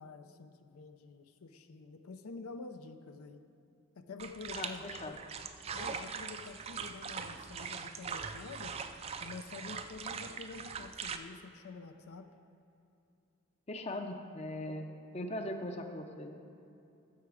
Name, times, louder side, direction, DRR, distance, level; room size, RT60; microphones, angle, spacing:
voice 1, 0.0-3.4 4.0-5.2 5.7-8.8 9.2-12.3, left 4 dB, 85° left, 8 dB, 0.6 m, -48 dB
sound 1, 4.2-11.2, right 6 dB, 30° right, 0.3 m, -42 dB
voice 2, 13.7-14.9 15.1-16.4, left 1 dB, 30° left, 5 dB, 0.6 m, -39 dB
14.5 x 5.9 x 4.9 m, 2.7 s
head